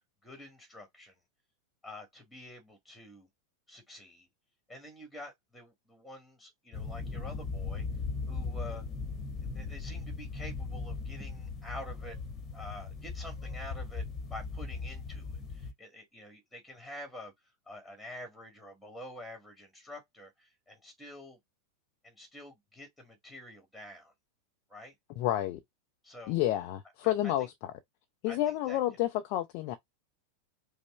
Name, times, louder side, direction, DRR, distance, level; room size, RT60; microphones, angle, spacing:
voice 1, 0.2-1.2 1.8-3.3 3.7-4.3 4.7-7.9 8.3-8.8 9.5-12.2 12.5-21.4 22.0-24.1 24.7-24.9 26.0-26.4 27.0-27.5 28.3-28.8, left 1 dB, ahead, 1.7 m, -48 dB
sound 1, 6.7-15.7, left 4 dB, 25° left, 1.1 m, -38 dB
voice 2, 25.2-25.6 26.3-27.5 28.2-29.8, left 13 dB, 45° left, 0.5 m, -30 dB
5.2 x 2.1 x 3.1 m
figure-of-eight pair, 90°, 0 cm